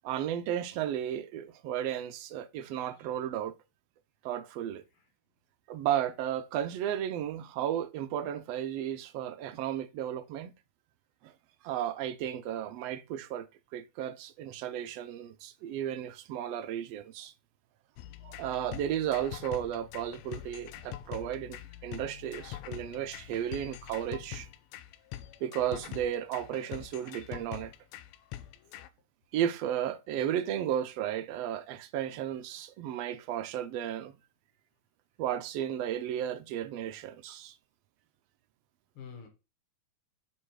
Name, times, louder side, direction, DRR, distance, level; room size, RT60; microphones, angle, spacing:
voice 1, 0.0-3.5 4.2-4.8 5.7-10.5 11.2-11.3 11.6-13.5 13.7-17.3 18.2-24.5 25.4-27.7 29.3-34.2 35.2-37.6, right 10 dB, 75° right, 1.5 m, -34 dB
voice 2, 2.6-3.1 4.9-5.1 38.9-39.3, left 6 dB, 50° left, 2.2 m, -49 dB
sound 1, 18.0-28.9, left 13 dB, 80° left, 1.7 m, -44 dB
6.1 x 5.7 x 4.8 m
omnidirectional pair, 3.4 m